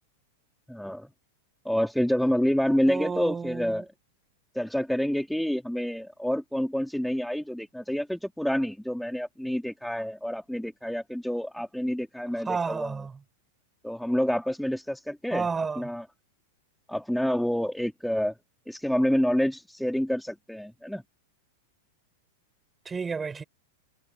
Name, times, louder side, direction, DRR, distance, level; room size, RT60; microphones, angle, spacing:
voice 1, 0.7-1.1 1.6-3.9 4.5-13.0 13.8-15.5 15.8-16.1 16.9-18.3 18.7-21.0, equal, ahead, 4.0 m, -28 dB
voice 2, 2.9-3.7 12.5-13.1 15.3-15.8 22.9-23.4, right 5 dB, 15° right, 4.6 m, -31 dB
hypercardioid pair, 100°, 0 cm